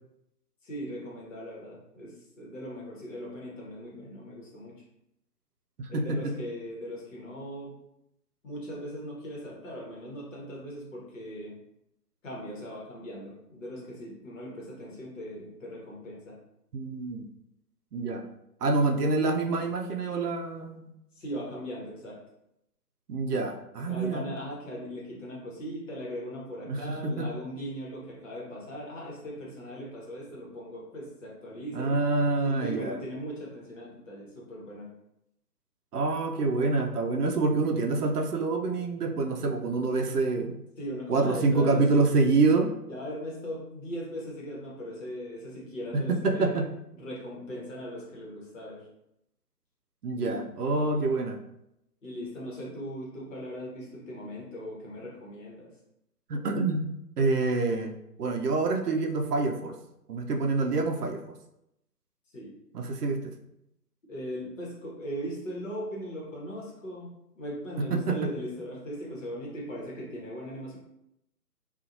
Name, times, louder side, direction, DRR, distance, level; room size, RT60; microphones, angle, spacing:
voice 1, 0.6-4.7 5.9-7.7 8.4-11.5 12.2-16.4 21.1-22.2 23.9-32.0 32.4-34.9 40.8-41.8 42.9-46.6 47.0-48.9 50.1-50.3 50.6-51.0 52.0-55.7 62.3-62.5 64.1-70.8, equal, 50° left, -4 dB, 1.1 m, -39 dB
voice 2, 5.8-6.3 16.7-17.3 17.9-18.2 18.6-20.9 23.1-24.3 26.7-27.3 31.7-33.0 35.9-40.6 41.1-42.7 45.9-46.7 50.0-51.4 56.3-56.9 57.2-59.8 60.1-61.2 62.7-63.3 67.9-68.3, right 3 dB, 70° right, 3 dB, 0.6 m, -27 dB
2.7 x 2.4 x 2.5 m, 0.81 s
figure-of-eight pair, 145°, 49 cm